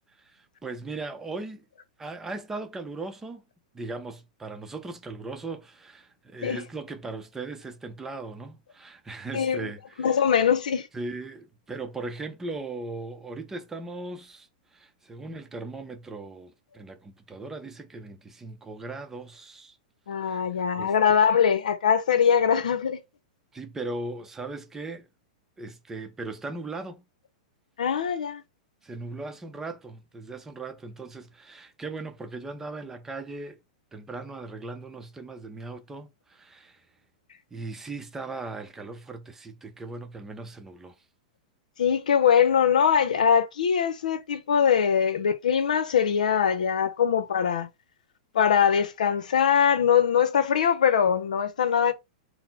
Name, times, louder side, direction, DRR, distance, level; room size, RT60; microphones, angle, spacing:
voice 1, 0.2-1.7 2.0-3.4 3.7-10.3 10.9-19.8 20.2-20.4 20.8-21.2 23.5-25.1 25.6-27.1 28.8-33.6 33.9-36.9 37.5-41.0, right 3 dB, 10° right, 0.6 m, -38 dB
voice 2, 9.3-9.7 10.0-10.9 20.1-23.0 27.8-28.4 41.8-47.7 48.3-51.9, left 7 dB, 85° left, 0.7 m, -22 dB
4.0 x 2.1 x 4.1 m
hypercardioid pair, 140°, 4 cm